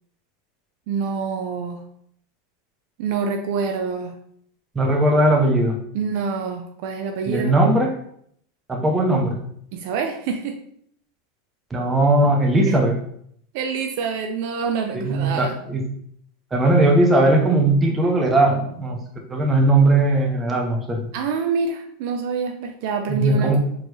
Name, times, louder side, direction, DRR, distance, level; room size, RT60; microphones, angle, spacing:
voice 1, 0.9-1.8 3.0-4.1 5.9-7.5 9.7-10.6 12.7-12.8 13.5-15.6 21.1-23.6, right 5 dB, 60° right, 4 dB, 0.5 m, -26 dB
voice 2, 4.7-5.8 7.3-7.9 8.7-9.4 11.7-13.0 14.9-15.8 16.5-19.0 19.3-21.1 23.1-23.6, right 2 dB, 15° right, 1 dB, 0.9 m, -18 dB
4.4 x 3.1 x 3.0 m, 0.67 s
hypercardioid pair, 115°, 0 cm